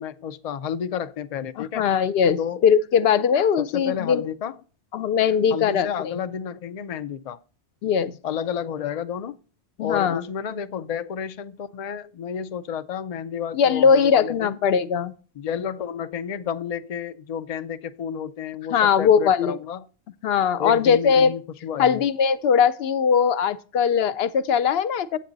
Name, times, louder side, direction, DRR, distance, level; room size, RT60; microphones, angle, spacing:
voice 1, 0.0-1.8 2.4-2.7 3.6-4.6 5.5-7.4 8.2-9.4 9.8-14.5 15.4-19.9 20.6-22.0, left 8 dB, 80° left, 0.3 m, -31 dB
voice 2, 1.6-4.3 4.9-5.9 7.8-8.1 9.8-10.2 13.5-15.1 18.7-19.6 20.2-21.3 21.8-25.2, left 7 dB, 60° left, 0.7 m, -20 dB
8.4 x 7.5 x 3.9 m
omnidirectional pair, 1.3 m